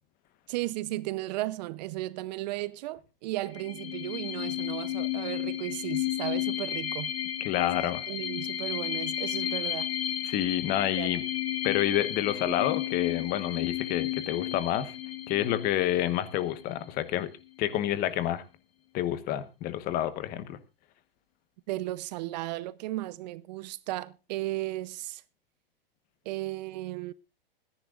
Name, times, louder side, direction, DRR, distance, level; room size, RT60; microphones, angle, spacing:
voice 1, 0.5-7.1 7.8-9.9 11.0-11.1 21.7-25.2 26.3-27.1, right 17 dB, 45° right, 0.7 m, -35 dB
sound 1, 3.5-16.9, left 11 dB, 90° left, 1.8 m, -33 dB
voice 2, 7.4-8.0 10.2-11.2 11.6-14.9 15.3-17.3 17.6-18.4 18.9-20.6, left 12 dB, 30° left, 1.2 m, -28 dB
25.0 x 10.5 x 2.5 m
hypercardioid pair, 145°, 29 cm